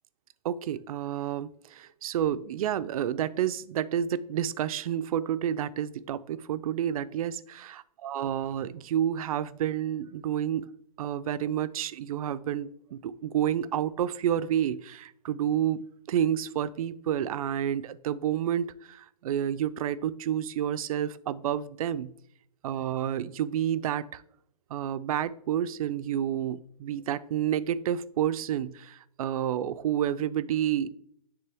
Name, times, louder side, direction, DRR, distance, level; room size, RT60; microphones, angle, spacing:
voice 1, 0.4-10.7 11.0-22.1 22.6-24.2 24.7-30.9, right 10 dB, 60° right, 15 dB, 0.4 m, -30 dB
9.9 x 3.4 x 3.4 m, 0.67 s
hypercardioid pair, 155°, 21 cm